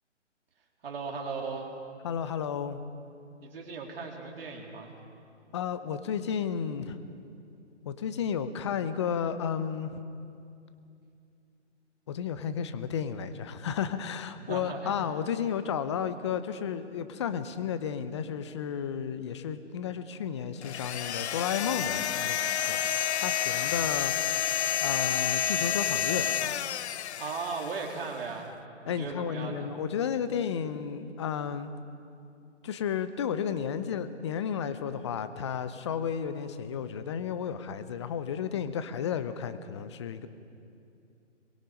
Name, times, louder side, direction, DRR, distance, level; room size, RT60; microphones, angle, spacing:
voice 1, 0.8-1.7 3.4-4.9 14.4-15.1 27.2-28.5 28.8-29.7, right 4 dB, 50° right, 0 dB, 4.0 m, -37 dB
voice 2, 2.0-2.8 5.5-7.0 7.8-10.0 12.1-22.4 22.7-24.1 24.8-26.3 28.9-31.7 32.6-40.3, left 8 dB, 25° left, 12 dB, 0.8 m, -32 dB
sound 1, 20.6-28.0, left 9 dB, 65° left, 0.5 m, -30 dB
24.0 x 22.5 x 5.3 m, 2.6 s
figure-of-eight pair, 150°, 36 cm